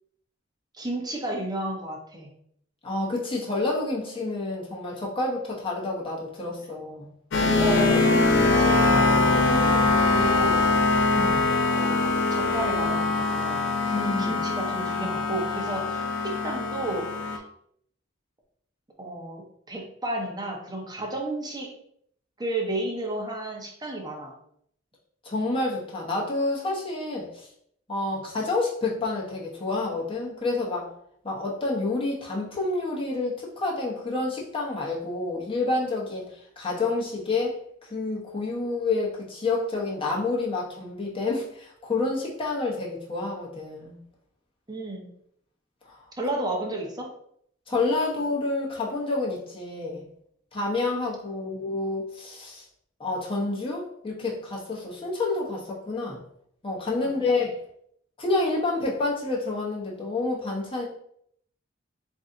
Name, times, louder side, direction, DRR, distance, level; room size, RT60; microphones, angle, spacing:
voice 1, 0.7-2.3 7.6-10.7 11.7-17.4 19.0-21.7 22.4-24.3 28.1-28.2 44.7-45.1 46.2-47.1 51.4-51.6 57.2-57.3, right 1 dB, 20° right, -1 dB, 0.7 m, -32 dB
voice 2, 2.8-7.1 11.1-11.4 13.9-14.4 25.2-27.5 27.9-30.9 31.2-44.0 45.9-46.0 47.7-50.0 50.5-52.6 53.0-56.2 56.6-57.5 58.2-60.8, left 3 dB, 25° left, -4 dB, 0.9 m, -29 dB
sound 1, 7.3-17.4, left 3 dB, 65° left, 0.5 m, -23 dB
3.2 x 2.6 x 3.7 m, 0.69 s
head